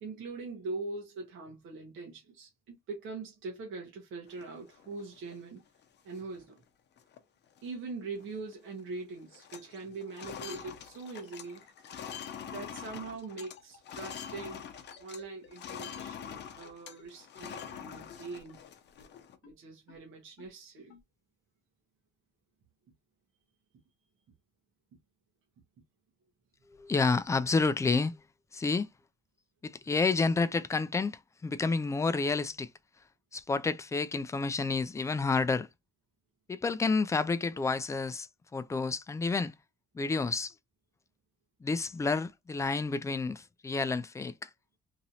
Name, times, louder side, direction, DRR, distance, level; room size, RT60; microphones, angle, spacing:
voice 1, 0.0-5.6 6.0-6.6 7.6-11.6 12.5-14.6 15.0-18.6 19.4-20.9, right 3 dB, 80° right, 1.0 m, -42 dB
sound 1, 4.3-5.4 5.8-5.9 6.2-6.5 7.0-7.2 7.5-8.5 8.8-9.0 9.3-15.2 15.5-19.4, left 8 dB, 60° left, 0.6 m, -45 dB
sound 2, 10.8-16.0 16.3-16.4 16.6-16.7 17.0-17.1 17.4-17.5 17.7-17.8 18.1-18.2 18.5-18.6 19.0-19.1 19.4-19.5 19.9-20.0 20.4-20.5 20.9-21.0, left 7 dB, 85° left, 0.9 m, -55 dB
voice 2, 26.8-28.2 28.5-28.9 29.6-32.7 33.3-35.7 36.5-39.5 40.0-40.5 41.6-44.5, left 4 dB, 15° left, 0.3 m, -30 dB
3.0 x 2.7 x 2.7 m
cardioid pair, 90°, 20 cm